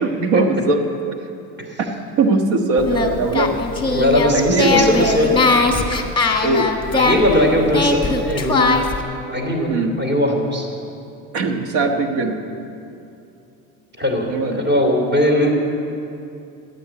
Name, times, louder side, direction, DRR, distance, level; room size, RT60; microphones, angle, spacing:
voice 1, 0.0-0.8 2.2-3.6 4.3-4.8 5.9-6.0 6.4-6.7 9.7-9.9 11.3-12.4 14.3-14.6, right 3 dB, 85° right, 5 dB, 1.4 m, -20 dB
Singing, 2.8-9.0, left 3 dB, 15° left, 1.4 m, -20 dB
voice 2, 3.9-5.5 6.9-8.8 9.3-9.7 10.0-10.7 14.0-15.5, equal, 30° right, 2 dB, 3.1 m, -19 dB
13.0 x 9.3 x 8.4 m, 2.7 s
cardioid pair, 105°, 34 cm